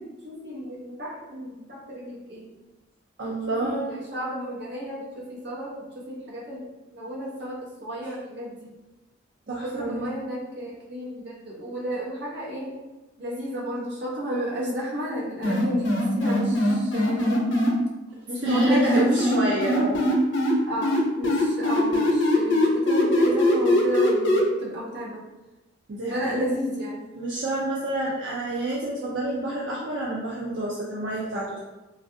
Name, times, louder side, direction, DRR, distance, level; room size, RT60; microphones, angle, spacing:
voice 1, 0.0-2.5 3.5-6.7 6.9-8.7 9.5-12.7 13.2-17.4 18.3-19.2 20.6-25.2 26.1-27.1, equal, 60° right, -5 dB, 0.9 m, -32 dB
voice 2, 3.2-4.0 8.0-8.1 9.5-10.1 18.4-20.0 25.9-26.5 27.1-31.6, right 1 dB, 80° right, -5 dB, 0.5 m, -28 dB
sound 1, 15.4-17.7 18.5-20.5 20.8-24.4, left 1 dB, 85° left, 0.6 m, -21 dB
3.2 x 2.4 x 2.5 m, 1.1 s
head